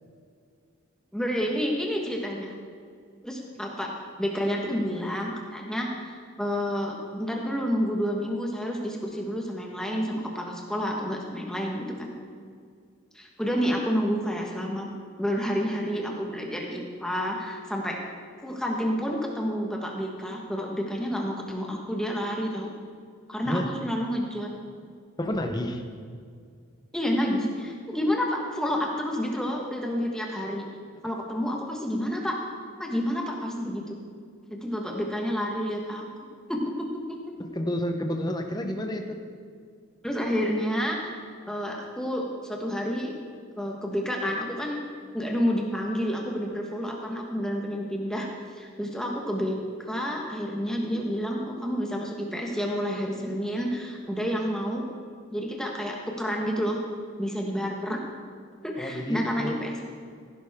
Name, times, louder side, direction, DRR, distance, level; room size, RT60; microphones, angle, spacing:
voice 1, 1.1-2.5 3.2-12.1 13.1-14.9 15.2-18.0 18.4-22.7 23.3-24.5 26.9-30.6 31.0-32.4 32.8-34.0 34.5-36.1 36.5-37.0 40.0-41.0 41.5-43.1 43.6-44.8 45.1-48.3 48.6-54.8 55.3-56.8 57.2-58.0 58.6-59.8, equal, 5° left, 0 dB, 1.2 m, -29 dB
voice 2, 25.2-25.8 37.4-39.2 58.8-59.6, left 1 dB, 20° left, 4 dB, 0.8 m, -30 dB
15.5 x 11.5 x 3.6 m, 2.1 s
head